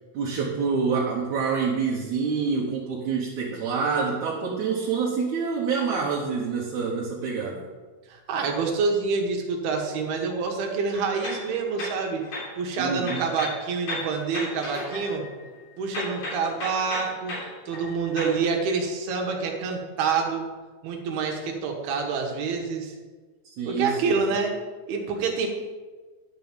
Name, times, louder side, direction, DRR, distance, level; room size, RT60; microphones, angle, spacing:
voice 1, 0.1-7.6 12.8-13.2 23.5-24.1, right 5 dB, 65° right, -3 dB, 2.2 m, -27 dB
voice 2, 8.1-12.2 12.6-15.2 15.8-17.4 17.7-20.5 20.8-23.0 23.7-24.5 24.9-25.5, right 5 dB, 85° right, 2 dB, 3.3 m, -27 dB
sound 1, 10.9-12.6 13.0-15.6 15.9-18.4, left 2 dB, 60° left, 4.7 m, -35 dB
11.0 x 4.8 x 7.2 m, 1.4 s
omnidirectional pair, 4.4 m